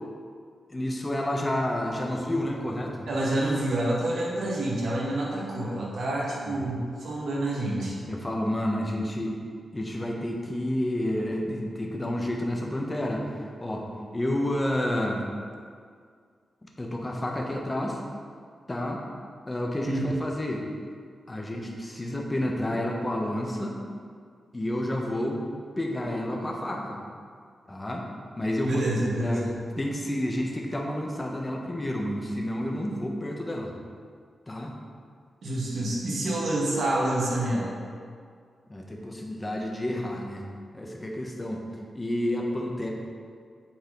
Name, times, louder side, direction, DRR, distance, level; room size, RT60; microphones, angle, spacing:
voice 1, 0.7-3.1 6.5-6.6 7.7-9.4 9.7-13.9 14.1-15.2 16.6-18.0 18.7-19.0 19.5-20.6 21.3-23.8 24.5-25.4 25.8-27.0 27.7-28.0 28.4-28.9 29.2-29.5 29.8-33.7 34.5-34.8 38.7-40.5 40.7-41.6 41.9-42.9, left 1 dB, 20° left, 0 dB, 1.0 m, -30 dB
voice 2, 3.1-7.9 19.8-20.0 28.6-29.5 35.4-37.7, right 1 dB, 80° right, -4 dB, 1.5 m, -28 dB
8.2 x 4.2 x 3.8 m, 2.1 s
wide cardioid pair, 100°, 0 cm